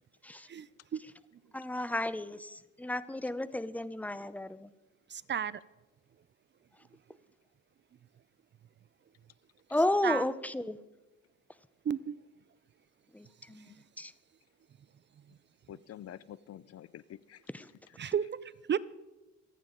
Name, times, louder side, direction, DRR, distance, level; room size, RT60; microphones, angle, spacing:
voice 1, 1.5-4.7 9.7-10.8 13.1-13.7 14.0-14.1 17.5-17.7, left 1 dB, 5° left, 15 dB, 0.6 m, -33 dB
voice 2, 5.1-5.6 10.0-10.2 11.9-12.2 18.0-18.8, right 8 dB, 40° right, 19 dB, 0.5 m, -32 dB
voice 3, 15.7-17.4 17.9-18.1, left 11 dB, 55° left, 19 dB, 0.5 m, -48 dB
26.0 x 8.9 x 3.9 m, 1.1 s
cardioid pair, 90°, 30 cm